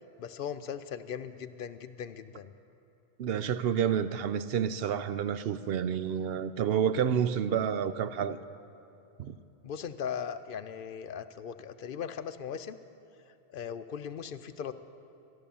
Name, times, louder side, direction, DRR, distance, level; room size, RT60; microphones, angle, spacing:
voice 1, 0.2-2.5 9.6-12.8 13.5-14.8, left 7 dB, 60° left, 0.7 m, -38 dB
voice 2, 3.2-8.4 9.2-9.4, right 8 dB, 65° right, 0.7 m, -29 dB
14.0 x 11.5 x 7.0 m
omnidirectional pair, 1.1 m